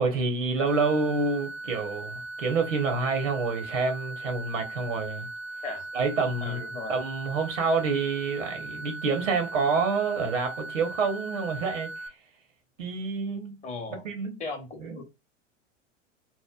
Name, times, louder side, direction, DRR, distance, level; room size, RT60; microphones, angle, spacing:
voice 1, 0.0-5.3 5.9-6.6 6.9-12.2 12.8-13.6 13.9-14.4 14.8-15.0, right 4 dB, 80° right, 0.9 m, -28 dB
sound 1, 0.7-12.1, right 2 dB, 75° left, 0.6 m, -39 dB
voice 2, 6.4-7.0 13.6-14.1 14.4-15.0, left 3 dB, 20° left, 0.7 m, -37 dB
2.9 x 2.1 x 2.2 m
hypercardioid pair, 95°, 38 cm